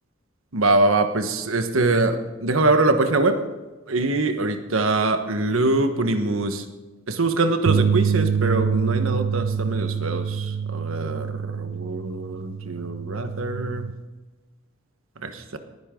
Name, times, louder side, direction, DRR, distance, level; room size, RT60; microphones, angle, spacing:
voice 1, 0.5-3.4 3.9-6.6 7.1-13.9 15.2-15.6, right 2 dB, 75° right, 8 dB, 1.3 m, -23 dB
sound 1, 7.7-13.9, right 6 dB, 60° right, 0.3 m, -26 dB
19.0 x 11.0 x 3.8 m, 1.2 s
head